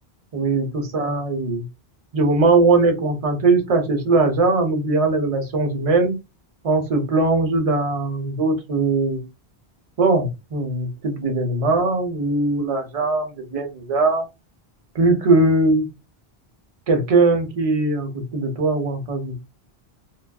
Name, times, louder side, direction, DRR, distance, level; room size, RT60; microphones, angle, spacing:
voice 1, 0.3-1.6 2.1-6.1 6.6-9.2 10.0-14.2 14.9-15.8 16.9-19.4, right 3 dB, 40° right, 5 dB, 0.6 m, -20 dB
2.4 x 2.2 x 2.3 m, 0.24 s
omnidirectional pair, 1.0 m